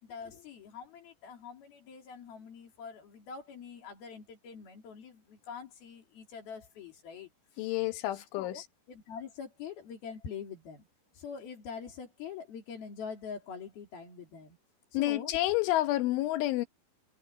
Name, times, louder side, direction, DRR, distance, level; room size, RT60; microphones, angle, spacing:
voice 1, 0.0-7.3 7.5-7.7 8.1-10.9 11.1-14.6 14.9-15.3, left 6 dB, 55° left, 4.9 m, -44 dB
voice 2, 7.6-8.6 14.9-16.7, left 16 dB, 90° left, 3.7 m, -29 dB
omnidirectional pair, 5.4 m